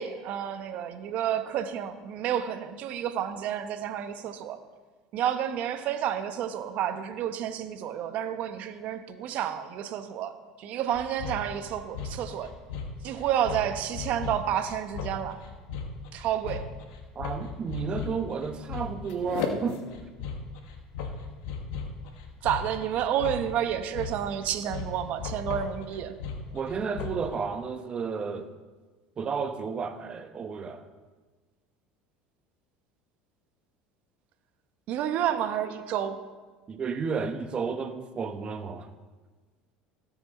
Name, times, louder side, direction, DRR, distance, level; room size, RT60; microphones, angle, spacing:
voice 1, 0.0-4.6 5.1-10.3 10.6-12.5 13.0-15.4 16.1-16.6 22.4-26.1 34.9-36.2, right 10 dB, 60° right, 9 dB, 1.0 m, -30 dB
sound 1, 10.9-27.3, left 5 dB, 75° left, 1.3 m, -37 dB
voice 2, 17.1-19.8 26.5-28.5 29.2-30.8 36.7-38.9, right 5 dB, 35° right, 8 dB, 1.1 m, -32 dB
17.0 x 6.1 x 4.2 m, 1.4 s
supercardioid pair, 95°, 3 cm